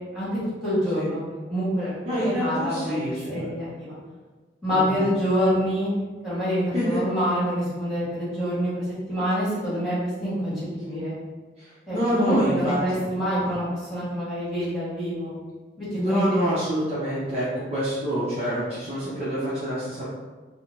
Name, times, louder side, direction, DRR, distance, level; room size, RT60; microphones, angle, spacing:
voice 1, 0.6-1.2 1.5-1.9 2.2-3.0 3.3-4.0 4.6-5.9 6.2-11.1 11.9-13.6 13.9-15.3 15.8-16.2, equal, ahead, -14 dB, 1.3 m, -26 dB
voice 2, 2.0-3.6 4.7-5.0 6.7-7.0 10.8-11.0 11.6-13.0 13.3-13.5 16.0-20.0, equal, 35° right, -11 dB, 0.7 m, -27 dB
2.7 x 2.0 x 3.1 m, 1.3 s
head